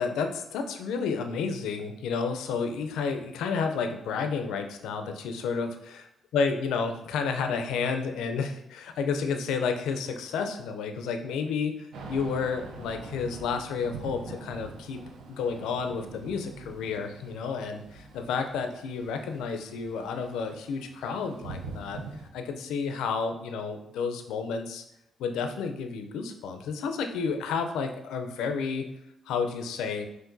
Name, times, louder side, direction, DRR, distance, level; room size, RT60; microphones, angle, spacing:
voice 1, 0.0-5.7 6.3-15.0 15.3-22.0 22.3-24.8 25.2-28.8 29.3-30.1, left 5 dB, 85° left, 6 dB, 0.4 m, -31 dB
Thunder / Rain, 11.9-22.3, right 3 dB, 80° right, 0.5 m, -44 dB
5.8 x 2.6 x 2.6 m, 0.82 s
supercardioid pair, 65°, 0 cm